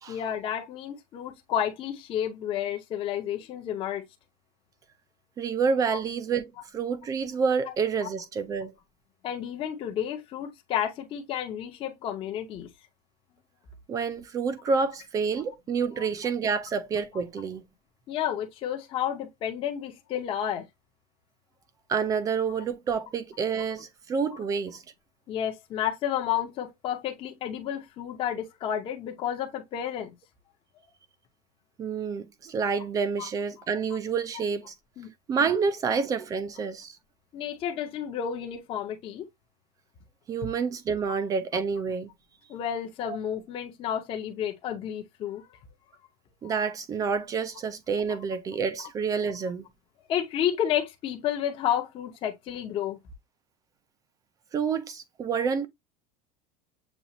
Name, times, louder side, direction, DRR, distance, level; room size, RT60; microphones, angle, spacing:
voice 1, 0.1-4.0 5.9-6.0 8.0-8.1 9.2-12.7 15.4-15.5 16.0-16.1 18.1-20.7 25.3-30.1 33.2-33.3 35.0-35.1 37.3-39.2 42.5-45.5 50.1-53.0, left 10 dB, 30° left, 0.7 m, -31 dB
voice 2, 5.4-8.7 13.9-17.6 21.9-24.8 31.8-34.7 35.3-37.0 40.3-42.1 46.4-49.6 54.5-55.7, right 5 dB, 20° right, 0.4 m, -28 dB
7.0 x 2.4 x 2.9 m
cardioid pair, 175°, 19 cm